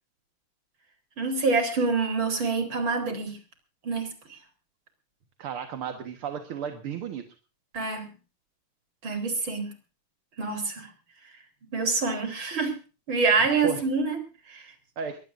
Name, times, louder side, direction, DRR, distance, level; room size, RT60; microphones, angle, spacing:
voice 1, 1.2-3.4 3.8-4.4 7.7-8.1 9.0-9.7 10.4-10.9 11.7-12.7 13.1-14.2 14.5-14.7, right 4 dB, 65° right, 6 dB, 4.9 m, -26 dB
voice 2, 5.4-7.3 13.6-13.8 15.0-15.2, right 7 dB, 85° right, 6 dB, 2.4 m, -33 dB
23.0 x 18.0 x 2.6 m, 0.34 s
omnidirectional pair, 2.3 m